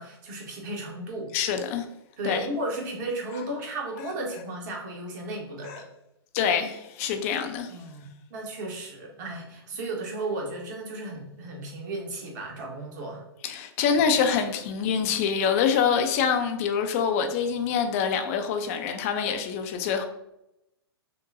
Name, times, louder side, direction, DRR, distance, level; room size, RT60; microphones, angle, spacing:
voice 1, 0.0-1.3 2.2-5.8 7.7-13.2, right 2 dB, 45° right, 1 dB, 1.0 m, -34 dB
voice 2, 1.3-1.9 2.2-2.5 5.6-5.8 6.3-7.7 13.4-20.1, left 7 dB, 35° left, 7 dB, 0.4 m, -25 dB
5.5 x 2.2 x 2.5 m, 0.85 s
figure-of-eight pair, 110°, 14 cm